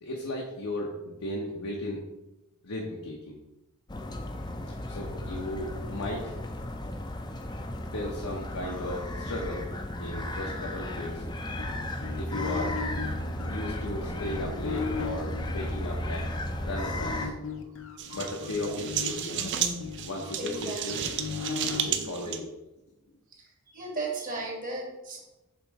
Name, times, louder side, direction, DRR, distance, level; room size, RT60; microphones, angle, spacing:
voice 1, 0.0-2.0 2.6-3.4 4.9-6.3 7.9-9.7 10.0-11.3 12.2-12.8 13.5-16.2 16.6-17.3 18.1-19.5 20.0-21.0 21.7-22.4, left 1 dB, 90° left, -2 dB, 0.9 m, -35 dB
sound 1, 3.9-17.3, left 1 dB, 20° left, 0.5 m, -35 dB
sound 2, 11.6-16.3 17.0-21.9, left 5 dB, 60° left, 0.6 m, -37 dB
sound 3, 18.0-22.4, right 9 dB, 55° right, 0.5 m, -33 dB
voice 2, 18.5-18.9 20.4-20.8 21.9-22.3 23.3-25.2, right 2 dB, 40° right, 0 dB, 1.5 m, -37 dB
6.9 x 3.1 x 4.7 m, 0.96 s
head